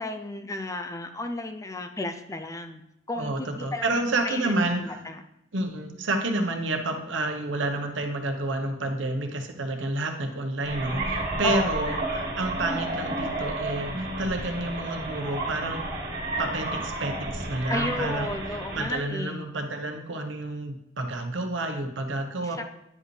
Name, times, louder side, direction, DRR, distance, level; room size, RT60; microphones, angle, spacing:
voice 1, 0.0-2.8 3.1-3.9 4.2-5.2 11.4-12.0 17.7-19.5 22.4-22.6, left 2 dB, 15° left, 7 dB, 0.4 m, -33 dB
voice 2, 3.2-5.0 5.5-15.8 16.4-22.6, right 2 dB, 80° right, 4 dB, 0.9 m, -29 dB
sound 1, 10.6-18.9, right 2 dB, 50° right, 1.9 m, -31 dB
9.6 x 5.1 x 3.2 m, 0.83 s
head